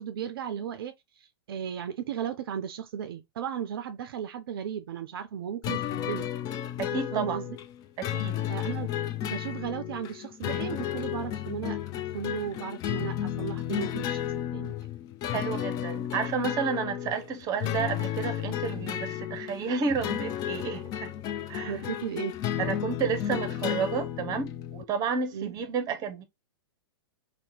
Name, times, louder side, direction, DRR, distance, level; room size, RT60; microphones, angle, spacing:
voice 1, 0.0-6.3 6.9-7.6 8.5-8.9 9.2-11.8 12.0-14.8 21.6-22.4 25.3-25.5, right 8 dB, 60° right, 0.4 m, -35 dB
sound 1, 5.6-24.8, left 11 dB, 30° left, 0.3 m, -33 dB
voice 2, 6.8-7.4 8.0-8.5 15.3-21.1 21.5-21.9 22.6-26.2, right 6 dB, 30° right, 0.7 m, -31 dB
2.7 x 2.1 x 3.7 m
figure-of-eight pair, 105°, 13 cm